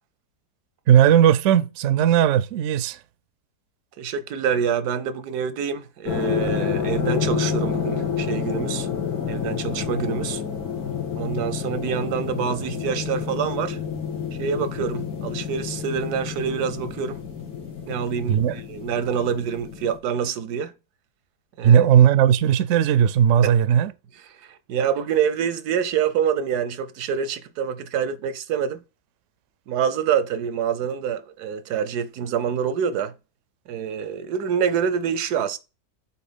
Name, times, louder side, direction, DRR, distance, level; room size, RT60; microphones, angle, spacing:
voice 1, 0.9-3.0 18.3-18.6 21.6-23.9, right 9 dB, 65° right, 0.8 m, -17 dB
voice 2, 4.0-8.9 9.3-10.4 11.2-13.8 14.4-17.2 17.9-20.7 21.6-21.8 23.4-23.8 24.5-28.8 29.7-33.1 33.7-35.6, right 7 dB, 85° right, 1.3 m, -26 dB
sound 1, 6.1-20.0, left 7 dB, 70° left, 2.2 m, -29 dB
7.8 x 2.9 x 5.1 m
omnidirectional pair, 1.6 m